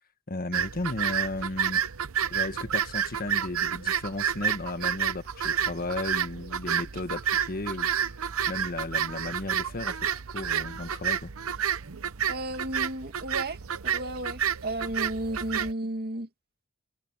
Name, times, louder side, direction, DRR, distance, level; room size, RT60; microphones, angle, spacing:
voice 1, 0.3-1.8 2.3-8.1 8.5-10.0 10.3-11.3, left 2 dB, 45° left, 1.5 m, -34 dB
sound 1, 0.5-15.7, right 8 dB, 75° right, 0.8 m, -30 dB
voice 2, 12.3-13.6 13.8-16.3, right 1 dB, 50° right, 2.3 m, -33 dB
head